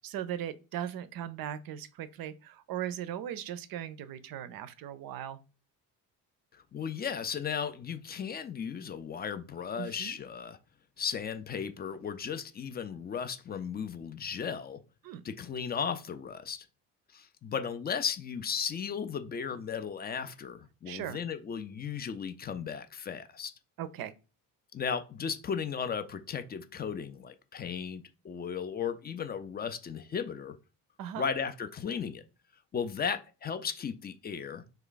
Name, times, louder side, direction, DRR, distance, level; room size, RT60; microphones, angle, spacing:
voice 1, 0.0-5.4 9.8-10.2 15.0-15.2 20.9-21.2 23.8-24.1 31.0-31.3, right 10 dB, 50° right, 0.5 m, -38 dB
voice 2, 6.5-10.6 11.0-14.8 15.2-16.7 17.1-23.5 24.7-30.6 31.2-32.2 32.7-34.6, left 7 dB, 25° left, 0.3 m, -35 dB
3.2 x 2.3 x 3.8 m
hypercardioid pair, 50°, 47 cm